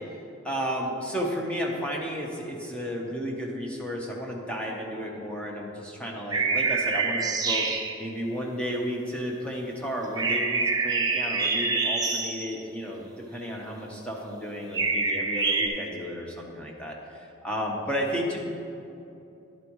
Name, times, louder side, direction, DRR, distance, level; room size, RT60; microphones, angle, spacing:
voice 1, 0.4-7.7 8.0-18.4, equal, 5° left, -2 dB, 1.0 m, -33 dB
sound 1, 6.3-8.0 10.2-12.5 14.7-15.7, right 4 dB, 20° right, 0.6 m, -26 dB
10.5 x 9.1 x 3.1 m, 2.7 s
head